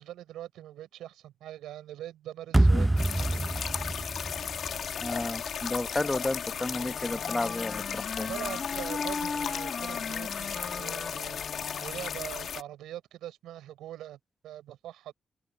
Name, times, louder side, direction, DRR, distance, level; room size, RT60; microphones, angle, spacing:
voice 1, 0.0-3.5 8.3-15.1, right 13 dB, 90° right, 7.2 m, -43 dB
sound 1, 2.5-5.6, right 2 dB, 20° right, 0.9 m, -26 dB
sound 2, 3.0-12.6, left 7 dB, 70° left, 1.5 m, -35 dB
voice 2, 5.0-8.3, left 2 dB, 25° left, 1.6 m, -32 dB
Wind instrument woodwind instrument, 6.7-12.4, left 5 dB, 55° left, 1.6 m, -38 dB
supercardioid pair, 45°, 0 cm